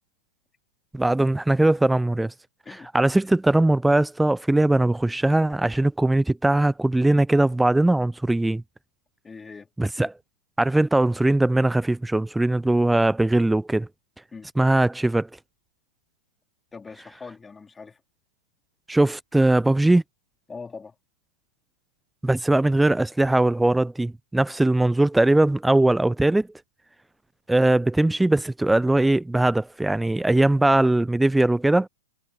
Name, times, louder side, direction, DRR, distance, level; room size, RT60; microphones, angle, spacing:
voice 1, 0.9-2.3 2.9-8.6 9.8-10.1 10.6-13.9 14.6-15.3 18.9-20.0 22.2-26.5 27.5-31.9, right 2 dB, 5° right, 0.7 m, -20 dB
voice 2, 9.2-9.7 10.0-10.1 14.3-14.5 16.7-18.0 20.5-21.0, left 4 dB, 10° left, 4.0 m, -41 dB
figure-of-eight pair, 105°, 0 cm